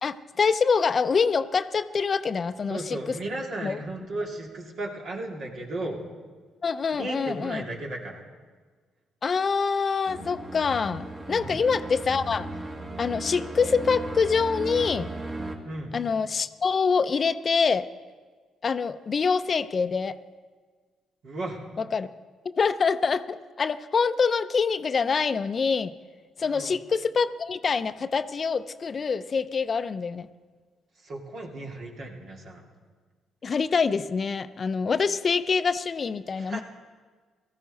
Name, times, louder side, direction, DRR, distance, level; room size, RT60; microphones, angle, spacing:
voice 1, 0.0-3.2 3.6-3.8 6.6-7.7 9.2-12.5 13.0-15.1 15.9-17.9 18.6-20.2 21.8-22.1 22.4-25.9 26.4-30.3 33.4-36.6, left 5 dB, 45° left, 12 dB, 0.6 m, -25 dB
voice 2, 2.7-6.0 6.9-8.2 11.3-11.6 15.6-16.0 21.2-21.6 26.4-26.7 31.0-32.7 36.4-36.6, right 2 dB, 65° right, -1 dB, 2.5 m, -35 dB
sound 1, 10.1-15.6, right 2 dB, 40° right, 2.2 m, -36 dB
18.0 x 14.5 x 4.1 m, 1.5 s
hypercardioid pair, 50°, 0 cm